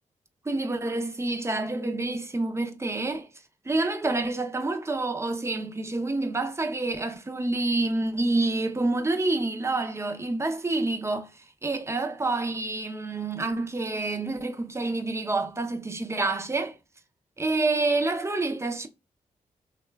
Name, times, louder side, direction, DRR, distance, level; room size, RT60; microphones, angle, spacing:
voice 1, 0.4-3.3 3.6-16.7 17.4-18.9, right 2 dB, 20° right, 0.6 m, -28 dB
2.9 x 2.3 x 3.3 m
cardioid pair, 60°, 15 cm